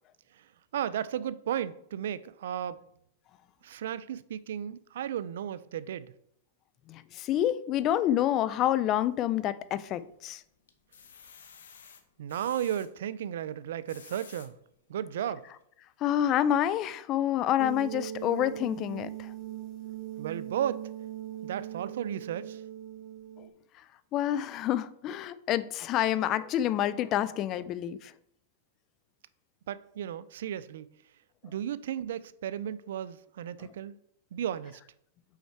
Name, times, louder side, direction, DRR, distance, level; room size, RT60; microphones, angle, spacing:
voice 1, 0.7-2.8 3.6-6.1 12.2-14.5 14.9-15.5 20.2-20.8 21.4-22.6 29.7-30.9 31.4-34.0 34.3-34.8, right 10 dB, 75° right, 0.3 m, -34 dB
voice 2, 6.9-10.4 16.0-19.3 24.1-28.1, left 11 dB, 35° left, 0.3 m, -28 dB
sound 1, 9.6-10.2 10.7-12.9 13.7-14.5 15.1-15.2 15.5-15.6, left 7 dB, 85° left, 0.7 m, -52 dB
sound 2, 17.6-23.5, right 11 dB, 40° right, 0.8 m, -40 dB
5.6 x 4.4 x 4.5 m
hypercardioid pair, 125°, 0 cm